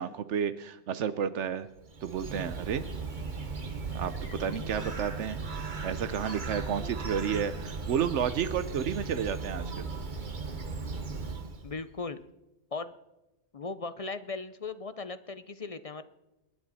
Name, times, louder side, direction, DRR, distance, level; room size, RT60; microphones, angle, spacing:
voice 1, 0.0-1.7 2.0-2.8 3.9-9.9, right 8 dB, 85° right, 12 dB, 1.0 m, -31 dB
Bird, 1.8-11.8, right 4 dB, 45° right, 1.3 m, -37 dB
sound 1, 3.9-6.9 7.4-8.4, left 5 dB, 60° left, 1.9 m, -52 dB
voice 2, 11.6-12.2 12.7-12.9 13.5-16.0, left 4 dB, 40° left, 12 dB, 0.6 m, -37 dB
29.0 x 10.5 x 4.1 m, 0.98 s
omnidirectional pair, 1.2 m